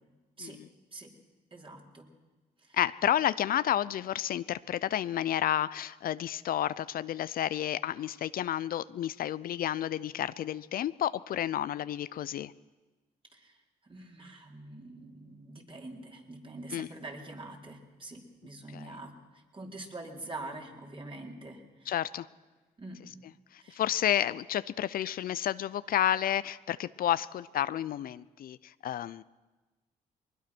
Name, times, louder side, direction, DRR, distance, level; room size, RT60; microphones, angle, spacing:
voice 1, 1.5-2.1 2.6-2.8 13.3-13.6 13.8-21.9 22.8-23.0 23.6-23.8, right 2 dB, 35° right, 1 dB, 4.1 m, -45 dB
voice 2, 2.7-12.5 16.7-16.9 18.7-19.0 21.9-22.3 23.5-29.2, left 11 dB, 65° left, 16 dB, 0.5 m, -31 dB
21.5 x 20.0 x 6.1 m, 1.2 s
supercardioid pair, 65°, 16 cm